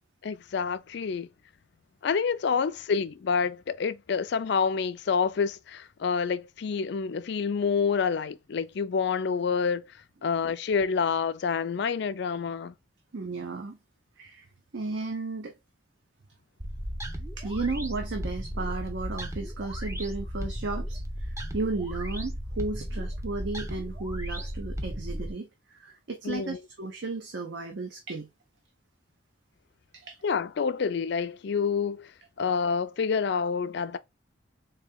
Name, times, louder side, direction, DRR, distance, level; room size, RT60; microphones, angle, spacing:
voice 1, 0.2-1.3 2.0-9.9 10.2-12.7 26.2-26.6 30.2-32.1 32.4-34.0, left 6 dB, 60° left, 0.4 m, -28 dB
voice 2, 13.1-13.8 14.2-14.5 14.7-15.5 17.4-28.3 29.9-30.2, right 3 dB, 60° right, 0.6 m, -34 dB
sound 1, 16.6-25.3, equal, 15° right, 0.6 m, -35 dB
3.9 x 2.7 x 3.5 m
head